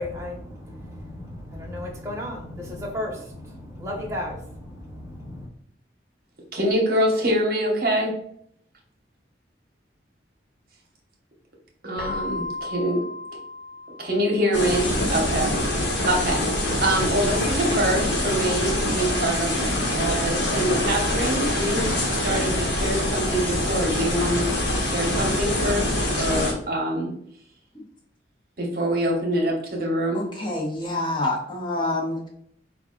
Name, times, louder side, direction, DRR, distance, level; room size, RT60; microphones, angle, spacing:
voice 1, 0.0-5.5, left 1 dB, 15° right, -2 dB, 1.0 m, -34 dB
voice 2, 6.5-8.2 11.8-13.1 14.0-15.5 16.1-19.6 20.0-27.1 28.6-30.3, right 1 dB, 55° right, 0 dB, 0.9 m, -25 dB
Keyboard (musical), 12.0-14.7, left 2 dB, 50° left, 1.1 m, -35 dB
sound 1, 14.5-26.5, left 1 dB, 85° left, 1.1 m, -24 dB
voice 3, 30.1-32.3, left 2 dB, 25° left, -2 dB, 0.8 m, -27 dB
4.6 x 2.3 x 3.7 m, 0.67 s
head